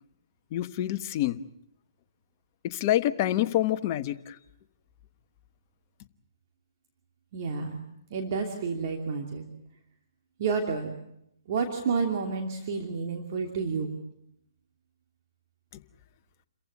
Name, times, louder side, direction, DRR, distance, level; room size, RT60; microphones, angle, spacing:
voice 1, 0.5-1.4 2.6-4.3, left 13 dB, 35° left, 9 dB, 1.2 m, -27 dB
voice 2, 7.3-7.8 8.1-9.4 10.4-10.9 11.5-13.9, right 5 dB, 45° right, 3 dB, 2.8 m, -30 dB
29.0 x 15.5 x 9.6 m, 0.81 s
hypercardioid pair, 140°, 2 cm